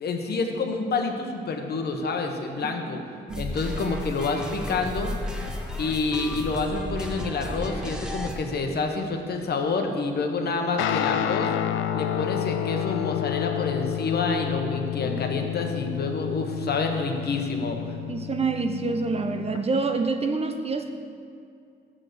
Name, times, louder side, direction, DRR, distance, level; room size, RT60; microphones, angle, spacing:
voice 1, 0.0-3.0 3.4-5.1 5.8-11.5 11.9-17.9, left 3 dB, 55° left, 4 dB, 1.0 m, -28 dB
voice 2, 2.6-3.0 3.3-3.5 15.0-15.2 18.1-20.9, right 4 dB, 30° right, 6 dB, 0.6 m, -27 dB
sound 1, 3.3-8.3, left 1 dB, 5° right, 0.9 m, -33 dB
Guitar, 10.8-19.6, left 10 dB, 85° left, 0.4 m, -29 dB
6.6 x 6.3 x 6.6 m, 2.4 s
cardioid pair, 90°, 20 cm